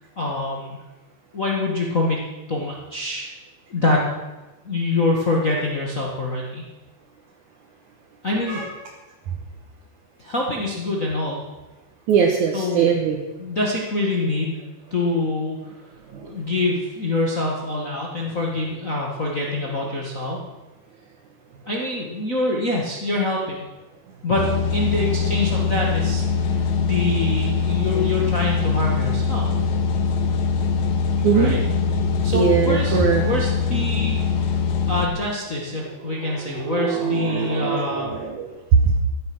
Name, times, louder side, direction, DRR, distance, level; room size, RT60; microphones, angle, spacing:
voice 1, 0.2-0.7 1.3-3.3 3.7-4.1 4.6-6.6 8.2-8.6 10.2-11.4 12.5-13.0 13.4-15.7 16.2-20.4 21.7-23.6 24.2-29.4 31.3-31.6 32.2-34.6 34.9-38.1, left 2 dB, 85° left, -2 dB, 0.7 m, -25 dB
voice 2, 12.1-13.2 16.1-16.3 31.2-31.5 32.3-33.2 36.0-39.0, right 6 dB, 65° right, 0 dB, 2.2 m, -21 dB
sound 1, 24.4-35.1, left 5 dB, 60° left, 2.0 m, -22 dB
15.0 x 10.0 x 6.1 m, 1.1 s
omnidirectional pair, 4.6 m